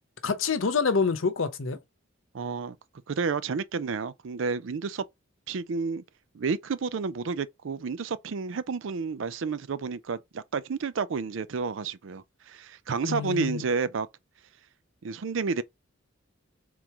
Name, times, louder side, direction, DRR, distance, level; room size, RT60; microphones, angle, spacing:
voice 1, 0.2-1.8 13.1-13.6, left 5 dB, 80° left, 0.8 m, -26 dB
voice 2, 2.3-2.8 3.1-5.0 5.5-6.0 6.3-14.1 15.0-15.6, right 5 dB, 70° right, 0.5 m, -30 dB
3.8 x 2.9 x 4.7 m
head